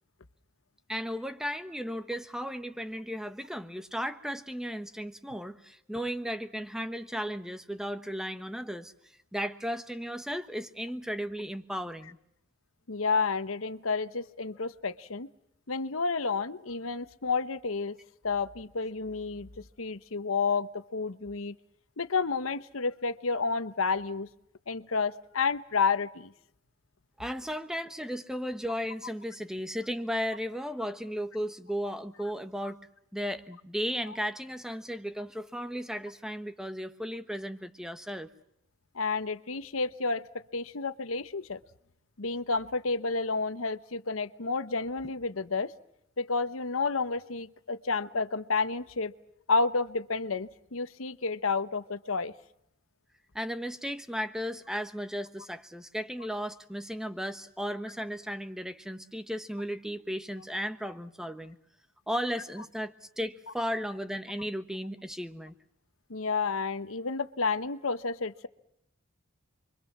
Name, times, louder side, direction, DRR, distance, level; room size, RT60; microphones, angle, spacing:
voice 1, 0.9-8.9 9.3-12.2 27.2-32.8 33.1-38.3 53.3-61.6 62.1-65.5, equal, 5° right, 10 dB, 1.2 m, -35 dB
voice 2, 12.9-15.3 15.7-18.0 18.2-21.5 22.0-24.3 24.7-26.3 32.6-32.7 38.9-40.2 40.5-41.6 42.2-45.7 46.2-49.1 49.5-52.3 66.1-68.5, left 4 dB, 90° left, 13 dB, 1.1 m, -30 dB
28.5 x 23.5 x 7.3 m, 0.76 s
head